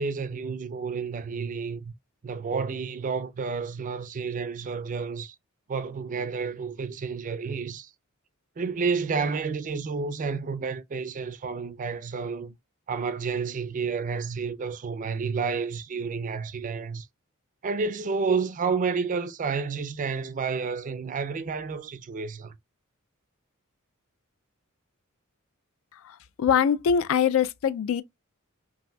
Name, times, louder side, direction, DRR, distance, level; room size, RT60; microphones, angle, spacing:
voice 1, 0.0-1.9 2.2-5.4 5.7-7.9 8.6-12.5 12.9-17.1 17.6-22.5, right 5 dB, 35° right, 0.4 m, -30 dB
voice 2, 26.0-28.0, left 7 dB, 65° left, 0.3 m, -23 dB
5.4 x 2.6 x 2.2 m
head